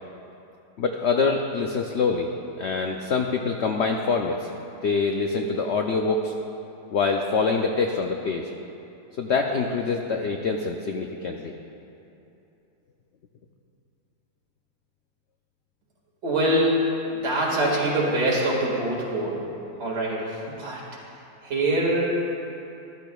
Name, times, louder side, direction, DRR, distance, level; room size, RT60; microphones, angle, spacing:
voice 1, 0.8-2.3 2.6-4.5 4.8-6.3 6.9-8.5 9.2-11.5, left 4 dB, 85° left, 3 dB, 0.6 m, -25 dB
voice 2, 16.2-16.8 17.1-19.5 19.8-20.8 21.4-22.1, right 1 dB, 85° right, -5 dB, 2.6 m, -24 dB
13.5 x 12.5 x 2.3 m, 2.8 s
omnidirectional pair, 1.7 m